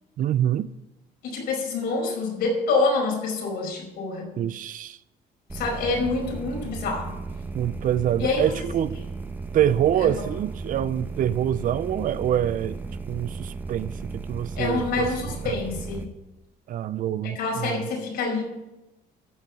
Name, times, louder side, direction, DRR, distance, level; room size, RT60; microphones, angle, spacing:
voice 1, 0.2-0.7 4.4-5.0 7.5-9.0 9.5-12.8 13.1-15.1 15.4-15.6 16.7-17.9, right 10 dB, 50° right, 0.5 m, -25 dB
voice 2, 1.2-4.3 5.5-7.1 8.2-8.4 10.0-10.1 14.6-16.1 17.2-18.4, left 3 dB, 75° left, 5.1 m, -26 dB
sound 1, 5.5-16.1, right 4 dB, 10° right, 1.1 m, -35 dB
14.0 x 5.3 x 8.1 m
cardioid pair, 110°, 17 cm